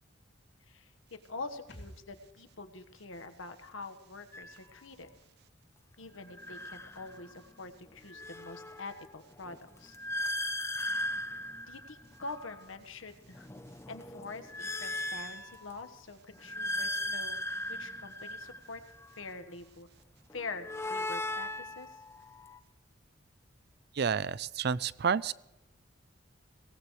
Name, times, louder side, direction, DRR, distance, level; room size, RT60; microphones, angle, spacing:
voice 1, 1.2-5.1 6.0-10.0 11.7-13.5 13.9-17.4 17.7-18.8 19.2-19.9 20.3-22.0, left 3 dB, 80° left, 7 dB, 1.4 m, -45 dB
sound 1, 1.7-5.2 5.5-5.6, equal, 60° left, 2.7 m, -57 dB
sound 2, 4.3-4.6 6.3-7.5 7.9-12.7 13.2-15.9 16.3-19.3 20.3-22.6, left 1 dB, 15° left, 0.6 m, -38 dB
voice 2, 24.0-25.3, right 6 dB, 55° right, 20 dB, 0.4 m, -30 dB
23.0 x 18.0 x 3.2 m, 0.93 s
head